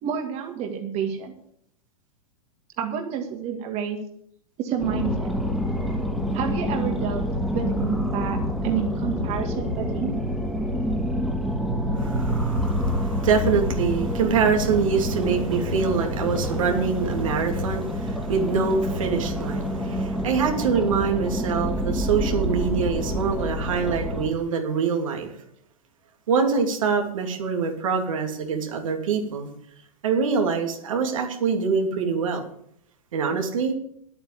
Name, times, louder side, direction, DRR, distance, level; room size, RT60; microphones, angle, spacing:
voice 1, 0.0-1.3 2.8-4.0 4.6-5.3 6.3-7.2 7.5-10.2, right 8 dB, 35° right, 3 dB, 2.2 m, -29 dB
sound 1, 4.8-24.3, equal, ahead, 2.4 m, -27 dB
voice 2, 12.0-25.3 26.3-29.5 30.0-32.4 33.1-33.7, right 5 dB, 70° right, 3 dB, 2.9 m, -24 dB
11.0 x 8.9 x 8.2 m, 0.69 s
hypercardioid pair, 110°, 18 cm